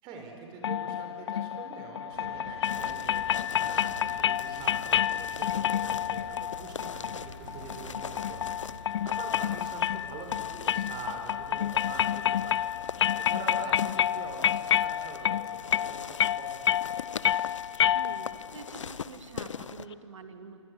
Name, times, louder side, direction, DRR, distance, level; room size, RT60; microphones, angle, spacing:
voice 1, 0.0-12.7 13.3-16.9, right 4 dB, 30° right, 2 dB, 4.6 m, -44 dB
sound 1, 0.6-18.5, left 10 dB, 60° left, 0.5 m, -29 dB
sound 2, 2.1-10.3, right 7 dB, 55° right, 2.5 m, -50 dB
sound 3, 2.6-19.9, left 6 dB, 75° left, 0.8 m, -43 dB
voice 2, 17.9-20.6, right 5 dB, 75° right, 7 dB, 2.3 m, -46 dB
28.5 x 24.5 x 7.9 m, 2.6 s
hypercardioid pair, 130°, 16 cm